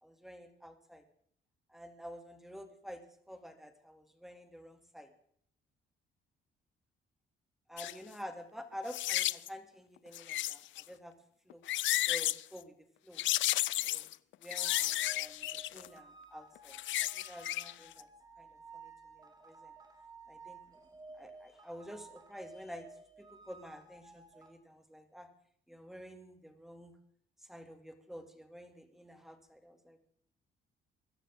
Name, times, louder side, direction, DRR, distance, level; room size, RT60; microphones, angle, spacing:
voice 1, 0.0-1.1 1.7-5.1 7.7-11.1 11.5-11.6 12.0-13.3 13.8-14.1 14.4-16.8 17.1-18.1 18.4-19.7 20.3-20.8 21.1-25.3 25.7-27.0 27.4-30.0, equal, ahead, 6 dB, 2.6 m, -50 dB
sound 1, 7.8-7.9 8.9-9.5 10.1-10.8 11.5-12.4 13.2-14.1 14.5-15.9 16.6-17.7 18.0-18.1, left 15 dB, 70° left, 0.5 m, -32 dB
sound 2, 14.5-24.5, right 4 dB, 20° right, 3.0 m, -55 dB
23.0 x 12.5 x 3.7 m, 0.65 s
cardioid pair, 90°, 20 cm